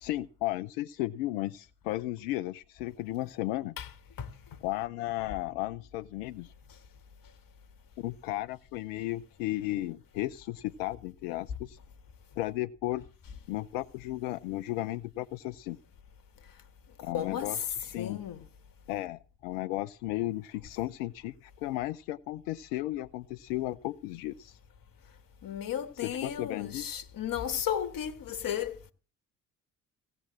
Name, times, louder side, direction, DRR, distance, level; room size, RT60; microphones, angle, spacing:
voice 1, 0.0-3.7 4.6-6.5 8.0-11.8 12.4-13.0 13.5-15.8 17.0-18.2 18.9-24.6 26.0-27.0, left 16 dB, 65° left, 0.6 m, -34 dB
voice 2, 17.0-17.7 18.0-18.5 25.4-28.9, left 9 dB, 45° left, 1.5 m, -34 dB
16.0 x 8.0 x 7.3 m
figure-of-eight pair, 50°, 46 cm